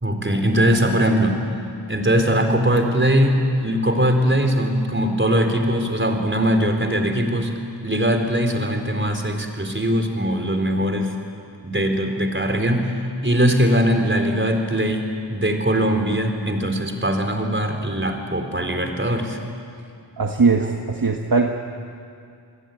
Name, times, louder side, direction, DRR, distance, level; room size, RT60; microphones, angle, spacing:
voice 1, 0.0-1.4 1.9-7.5 7.8-11.1 11.6-12.9 13.2-15.0 15.3-19.4, equal, 25° right, 4 dB, 4.2 m, -21 dB
voice 2, 20.2-21.5, right 4 dB, 50° right, 3 dB, 1.7 m, -19 dB
29.5 x 21.0 x 9.4 m, 2.4 s
wide cardioid pair, 65°, 45 cm